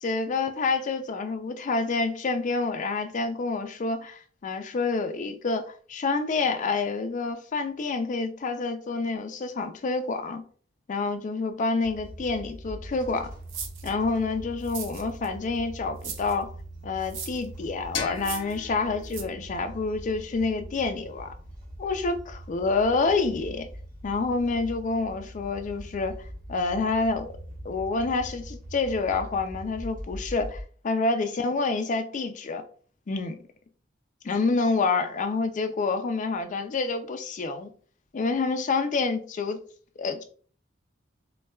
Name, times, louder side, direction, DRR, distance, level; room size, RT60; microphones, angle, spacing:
voice 1, 0.0-10.4 10.9-13.3 13.8-16.5 16.8-21.3 21.8-23.7 24.0-26.2 26.5-27.3 27.6-32.6 33.1-33.4 34.2-37.7 38.1-39.6 40.0-40.2, left 3 dB, 40° left, 0.4 m, -28 dB
sound 1, 11.8-30.6, right 1 dB, 45° right, 1.1 m, -42 dB
sound 2, 13.5-13.9 14.6-15.3 16.0-16.3 17.0-17.5 18.2-18.6 19.1-19.2, right 6 dB, 85° right, 0.6 m, -37 dB
sound 3, 17.9-20.8, left 6 dB, 85° left, 0.7 m, -39 dB
4.1 x 2.2 x 2.2 m
head